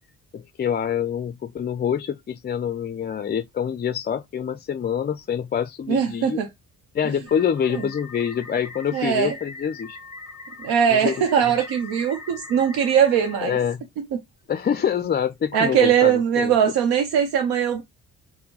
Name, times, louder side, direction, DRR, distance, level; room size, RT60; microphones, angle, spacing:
voice 1, 0.3-6.4 6.9-10.0 10.9-11.7 13.4-13.8 14.5-16.5, left 8 dB, 25° left, 0.4 m, -26 dB
voice 2, 5.9-6.5 7.7-7.8 8.9-9.3 10.6-13.6 15.5-17.8, right 8 dB, 75° right, 0.7 m, -20 dB
sound 1, 7.3-13.5, left 3 dB, 10° right, 1.3 m, -41 dB
4.4 x 2.1 x 3.8 m
supercardioid pair, 55°, 37 cm